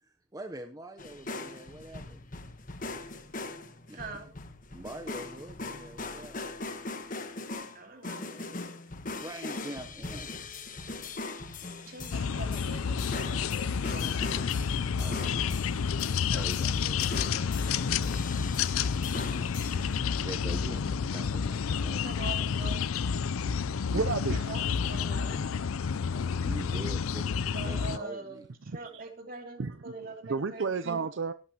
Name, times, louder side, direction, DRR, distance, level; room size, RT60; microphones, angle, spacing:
voice 1, 0.0-2.3 3.9-4.2 4.7-6.4 9.1-10.3 15.0-15.6 16.3-17.7 20.1-22.1 23.9-24.0 25.0-25.9 26.3-28.5, right 1 dB, 15° right, 6 dB, 0.8 m, -44 dB
sound 1, 1.0-20.0, left 3 dB, 40° left, 1.2 m, -40 dB
voice 2, 3.9-4.3 7.7-8.3 11.9-14.3 22.0-22.8 24.5-24.6 24.9-25.3 26.1-26.4 27.5-28.4 28.7-30.8, right 3 dB, 45° right, 4 dB, 2.9 m, -43 dB
sound 2, 12.1-28.0, left 6 dB, 85° left, 0.5 m, -30 dB
voice 3, 23.7-24.6 24.8-25.0 28.7-29.1 29.6-31.3, right 4 dB, 65° right, 11 dB, 0.6 m, -33 dB
17.5 x 11.5 x 2.9 m, 0.33 s
head